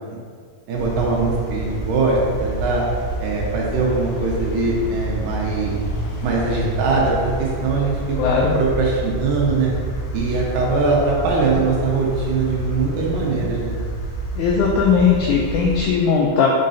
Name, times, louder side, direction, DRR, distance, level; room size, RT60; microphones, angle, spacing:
sound 1, 0.7-15.9, right 2 dB, 70° left, 1.9 m, -28 dB
voice 1, 0.7-2.8 3.2-5.8 6.2-9.7 10.1-13.8, right 3 dB, 75° right, -3 dB, 2.5 m, -21 dB
voice 2, 8.2-8.5 14.4-16.5, left 6 dB, 85° left, -2 dB, 1.7 m, -18 dB
7.5 x 5.2 x 2.7 m, 2.1 s
omnidirectional pair, 4.0 m